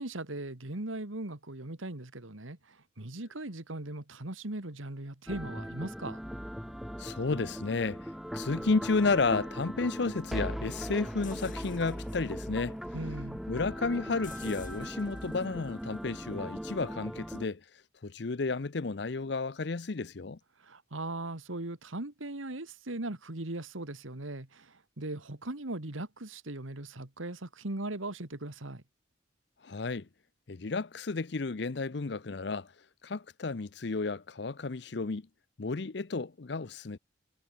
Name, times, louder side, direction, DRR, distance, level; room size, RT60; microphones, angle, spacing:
voice 1, 0.0-6.2 12.9-13.4 20.6-28.8, right 2 dB, 85° right, 2.2 m, -39 dB
sound 1, 5.3-17.5, equal, ahead, 0.7 m, -39 dB
voice 2, 7.0-8.1 8.3-12.8 13.5-17.6 18.0-20.4 29.6-30.1 30.5-32.7 33.0-35.3 35.6-37.0, left 3 dB, 60° left, 0.6 m, -32 dB
sound 2, 11.2-17.0, left 5 dB, 40° left, 7.9 m, -55 dB
head